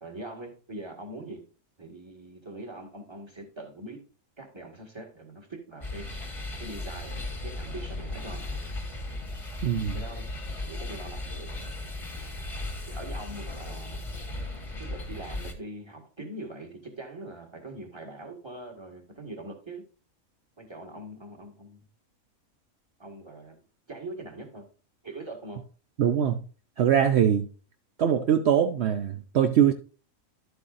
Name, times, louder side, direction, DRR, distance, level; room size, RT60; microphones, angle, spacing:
voice 1, 0.0-1.4 1.8-4.0 4.4-6.1 6.6-8.6 9.9-10.2 10.6-11.5 12.9-14.1 14.8-19.9 20.6-21.8 23.0-23.6 23.9-24.7 25.0-25.6, right 2 dB, 20° right, 1.9 m, -42 dB
sound 1, 5.8-15.5, left 2 dB, 25° left, 1.3 m, -36 dB
voice 2, 9.6-10.0 26.0-26.4 26.8-27.5 28.0-29.7, right 9 dB, 60° right, 0.7 m, -22 dB
11.5 x 7.9 x 2.5 m
omnidirectional pair, 1.5 m